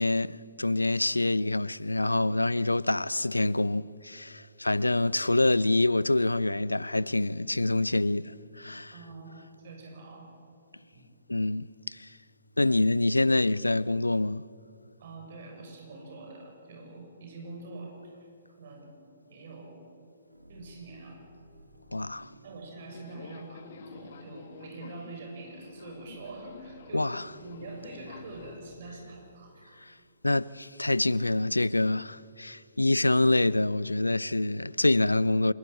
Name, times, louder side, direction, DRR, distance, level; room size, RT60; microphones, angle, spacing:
voice 1, 0.0-8.9 11.3-12.1 12.6-14.4 21.9-22.3 26.9-27.3 29.8-29.9 30.2-35.5, left 2 dB, 85° left, 0.5 m, -26 dB
voice 2, 8.9-10.3 10.9-11.1 15.0-18.3 18.6-19.8 20.5-21.2 22.4-29.8, right 2 dB, 50° right, 6.8 m, -45 dB
sound 1, 20.2-30.0, right 2 dB, 85° right, 2.4 m, -56 dB
Subway metro underground, 22.9-28.8, left 6 dB, 55° left, 1.9 m, -49 dB
25.0 x 20.0 x 9.3 m
figure-of-eight pair, 120°, 0 cm